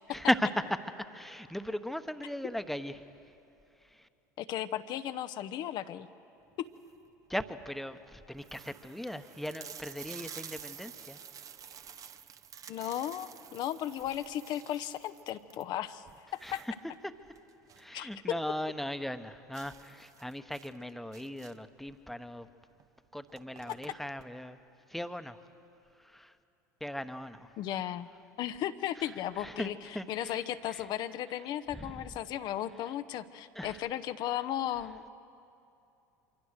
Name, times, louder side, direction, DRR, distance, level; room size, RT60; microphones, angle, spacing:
voice 1, 0.1-3.3 3.8-4.1 7.3-11.2 11.9-12.0 16.4-16.7 17.0-17.1 17.8-22.5 23.1-24.6 24.9-25.4 26.0-26.4 26.8-27.6 29.0-30.9 31.7-32.1 32.8-32.9 33.5-33.9, left 1 dB, ahead, 10 dB, 1.1 m, -37 dB
voice 2, 4.4-6.1 6.6-6.7 12.7-16.0 16.3-16.6 17.9-18.1 27.6-28.1 28.4-29.7 30.1-35.1, left 11 dB, 50° left, 10 dB, 0.8 m, -35 dB
sound 1, 6.6-7.1 7.7-7.8 8.0-8.1 8.4-18.0 18.3-18.4 18.8-18.9 19.5-21.8 22.7-22.8 23.1-24.3, right 8 dB, 40° right, 0.9 m, -50 dB
25.5 x 23.5 x 6.6 m, 2.7 s
hypercardioid pair, 75°, 9 cm